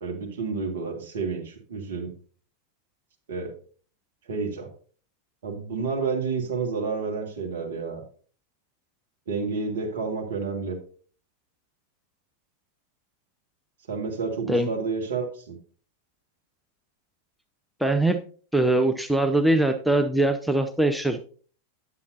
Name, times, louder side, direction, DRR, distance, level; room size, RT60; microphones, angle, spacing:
voice 1, 0.0-2.1 3.3-3.5 4.3-4.7 5.4-8.0 9.3-10.8 13.9-15.6, right 4 dB, 60° right, 1 dB, 1.9 m, -30 dB
voice 2, 17.8-18.2 18.5-21.2, right 1 dB, ahead, 6 dB, 0.5 m, -22 dB
9.2 x 8.1 x 2.7 m, 0.42 s
figure-of-eight pair, 90°, 0 cm